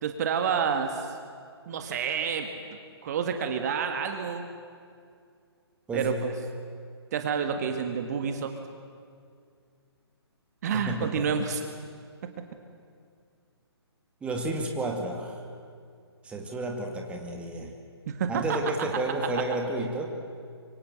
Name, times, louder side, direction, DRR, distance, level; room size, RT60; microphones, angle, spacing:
voice 1, 0.0-1.1 1.7-4.5 5.9-6.3 7.1-8.5 10.6-11.6 18.1-18.6, right 7 dB, 40° right, 6 dB, 1.9 m, -29 dB
voice 2, 5.9-6.3 10.7-11.4 14.2-15.4 16.2-17.8 18.3-20.1, right 1 dB, 10° right, 2 dB, 2.3 m, -31 dB
26.0 x 24.5 x 8.1 m, 2.3 s
figure-of-eight pair, 135°, 14 cm